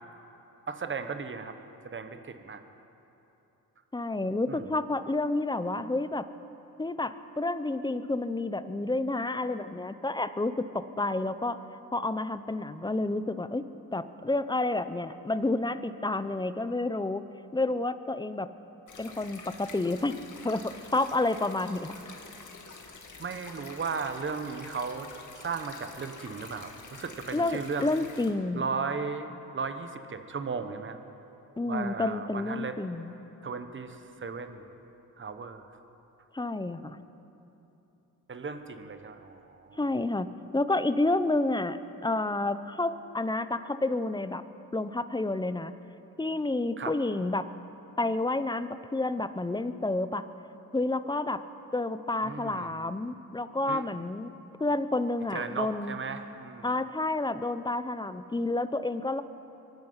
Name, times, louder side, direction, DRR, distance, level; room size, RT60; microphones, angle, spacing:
voice 1, 0.7-1.6 1.8-2.6 4.5-4.7 23.2-25.1 25.4-27.9 28.5-31.0 31.6-32.8 33.4-34.6 35.2-35.6 38.3-39.8 46.8-46.9 52.2-52.8 53.7-53.9 55.3-56.7, right 5 dB, 30° right, 8 dB, 1.1 m, -36 dB
voice 2, 3.9-6.3 6.8-11.6 11.9-13.6 13.9-17.2 17.5-18.5 19.0-20.2 20.4-21.9 27.3-28.7 31.6-33.1 36.3-37.0 39.8-40.3 40.5-44.4 44.7-45.7 46.2-47.5 48.0-50.3 50.7-51.4 51.7-54.3 54.6-56.0 56.6-59.2, left 2 dB, 10° left, 12 dB, 0.6 m, -30 dB
sound 1, 18.9-28.3, left 4 dB, 50° left, 2.1 m, -47 dB
24.0 x 10.5 x 5.6 m, 3.0 s
cardioid pair, 85°, 38 cm